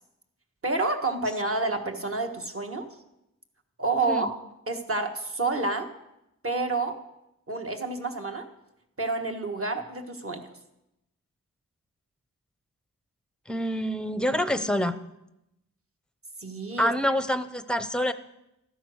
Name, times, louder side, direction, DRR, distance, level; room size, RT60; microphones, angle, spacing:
voice 1, 0.6-2.9 3.8-4.4 4.7-5.9 6.4-7.0 7.5-8.5 9.0-10.5 16.4-16.9, right 3 dB, 40° right, 4 dB, 1.4 m, -29 dB
voice 2, 13.5-15.0 16.8-18.1, equal, 5° left, 11 dB, 0.7 m, -26 dB
13.0 x 9.9 x 6.4 m, 0.88 s
wide cardioid pair, 105°, 34 cm